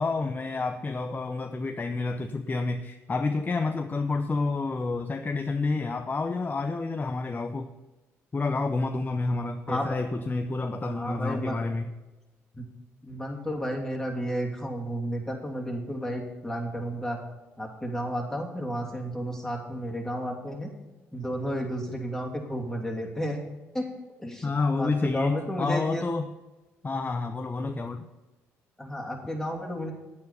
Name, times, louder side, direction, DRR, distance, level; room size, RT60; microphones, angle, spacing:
voice 1, 0.0-7.7 8.3-11.9 24.4-26.3 26.8-28.1, left 3 dB, 25° left, 7 dB, 0.7 m, -29 dB
voice 2, 10.8-11.6 12.5-12.6 13.0-17.2 17.6-20.7 21.1-23.4 23.7-23.9 24.2-24.5 24.8-26.0 28.8-29.9, equal, 5° left, -1 dB, 2.8 m, -32 dB
9.6 x 8.8 x 5.5 m, 1.1 s
hypercardioid pair, 55°, 6 cm